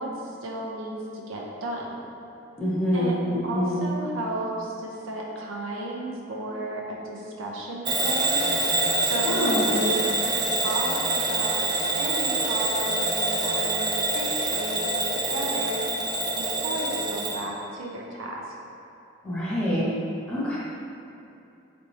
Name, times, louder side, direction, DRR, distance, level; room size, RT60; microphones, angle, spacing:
voice 1, 0.0-1.9 2.9-3.1 3.4-8.6 9.0-11.6 12.0-15.8 16.4-18.4, right 1 dB, 90° right, -2 dB, 0.6 m, -33 dB
voice 2, 2.6-3.9 9.2-9.7 19.2-19.9 20.3-20.6, equal, 5° left, -9 dB, 1.0 m, -26 dB
Bell / Alarm, 7.9-17.4, right 2 dB, 20° right, 0.4 m, -26 dB
3.9 x 3.4 x 3.2 m, 2.8 s
head